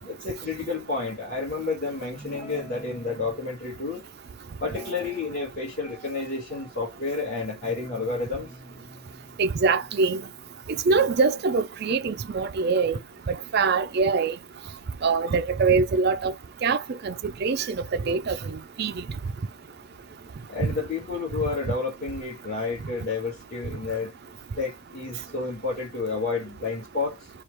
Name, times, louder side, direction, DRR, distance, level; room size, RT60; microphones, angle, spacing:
voice 1, 0.0-4.0 4.6-8.5 20.5-24.1 24.6-27.3, left 4 dB, 40° left, 1.9 m, -30 dB
Guitar, 2.2-3.4 4.6-5.6 5.9-7.0 7.6-11.1, right 1 dB, 5° right, 0.9 m, -46 dB
voice 2, 9.4-10.2 10.9-13.0 13.3-14.3 15.0-16.3 16.6-17.1 17.4-17.8 18.1-18.4 18.8-18.9, right 4 dB, 50° right, 0.4 m, -23 dB
4.5 x 2.4 x 3.3 m
head